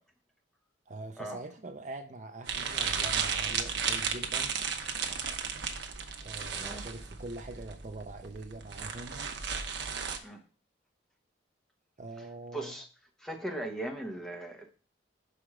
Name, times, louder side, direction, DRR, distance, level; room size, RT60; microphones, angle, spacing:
voice 1, 0.9-4.6 6.2-9.2 12.0-12.7, right 2 dB, 40° right, 0.5 m, -43 dB
sound 1, 2.5-10.2, right 6 dB, 70° right, 0.8 m, -34 dB
voice 2, 6.5-6.9 10.2-10.4 12.2-12.3 12.5-12.9 13.2-14.7, right 1 dB, 5° left, 1.0 m, -38 dB
5.9 x 4.9 x 3.6 m
head